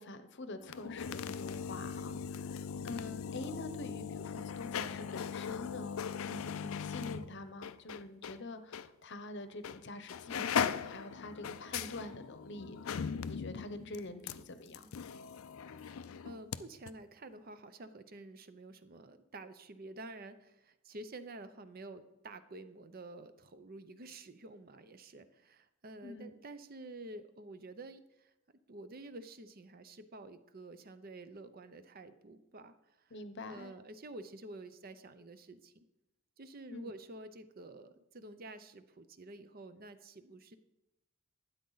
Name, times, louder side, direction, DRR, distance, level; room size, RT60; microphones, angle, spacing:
voice 1, 0.0-6.0 6.3-14.9 26.0-26.3 33.1-33.7 36.7-36.9, left 2 dB, 55° left, 10 dB, 0.8 m, -46 dB
sound 1, 0.6-8.4 8.7-8.9 9.6-9.8 10.1-16.6 16.9-17.0, left 7 dB, 75° left, 0.4 m, -39 dB
voice 2, 15.7-28.3 28.7-32.8 33.0-33.1 33.5-35.8 36.4-40.6, right 2 dB, 45° right, 11 dB, 0.6 m, -50 dB
12.5 x 9.5 x 4.0 m, 0.94 s
head